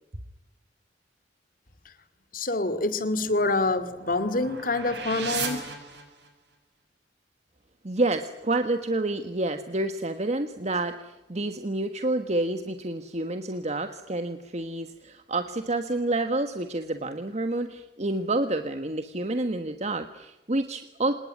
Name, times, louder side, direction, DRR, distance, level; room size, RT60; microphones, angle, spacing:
voice 1, 2.3-5.6, left 2 dB, 50° left, 13 dB, 2.5 m, -26 dB
sound 1, 3.1-6.5, right 5 dB, 70° right, 6.8 m, -37 dB
voice 2, 7.8-21.1, right 2 dB, 40° right, 8 dB, 1.5 m, -29 dB
27.0 x 20.0 x 9.6 m, 0.98 s
head